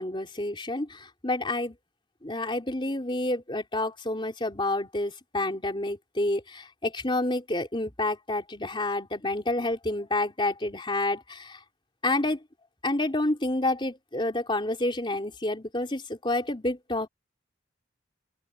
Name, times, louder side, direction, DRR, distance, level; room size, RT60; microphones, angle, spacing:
voice 1, 0.0-1.8 2.2-11.6 12.0-12.4 12.8-17.1, left 2 dB, 25° left, 3.7 m, -29 dB
open air
head